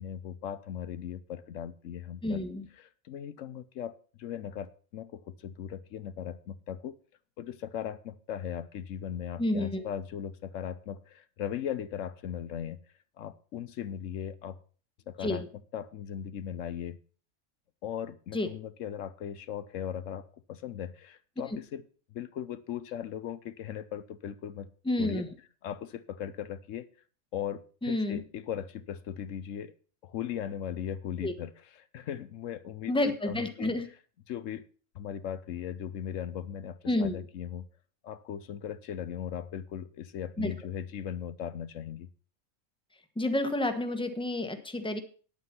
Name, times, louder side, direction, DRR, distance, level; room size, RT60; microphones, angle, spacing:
voice 1, 0.0-2.4 2.8-7.0 7.4-12.8 13.2-14.6 15.1-15.4 15.7-17.0 17.8-21.8 22.1-24.7 25.0-25.2 25.6-26.9 27.3-29.7 30.0-32.9 33.2-33.7 34.3-34.6 34.9-37.7 38.0-42.1, left 9 dB, 80° left, 14 dB, 1.1 m, -38 dB
voice 2, 2.2-2.7 9.4-9.9 15.2-15.4 18.3-18.5 21.5-21.6 24.8-25.3 27.8-28.2 31.2-31.3 32.9-33.8 36.9-37.2 40.4-40.5 43.2-45.0, left 1 dB, 5° left, 7 dB, 1.1 m, -29 dB
9.6 x 8.7 x 5.8 m, 0.40 s
omnidirectional pair, 1.3 m